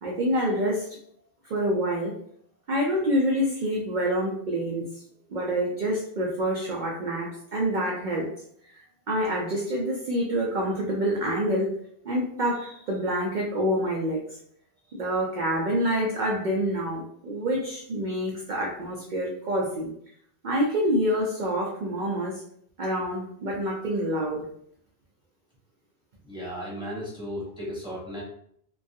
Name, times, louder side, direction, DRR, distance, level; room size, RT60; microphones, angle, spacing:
voice 1, 0.0-0.9 1.4-2.1 2.7-4.8 5.3-8.3 8.7-11.7 12.0-14.4 14.9-19.9 20.4-22.4 22.8-24.5, equal, 80° right, -2 dB, 0.4 m, -27 dB
voice 2, 26.3-28.2, equal, 5° right, -7 dB, 1.0 m, -35 dB
2.3 x 2.3 x 2.5 m, 0.66 s
omnidirectional pair, 1.3 m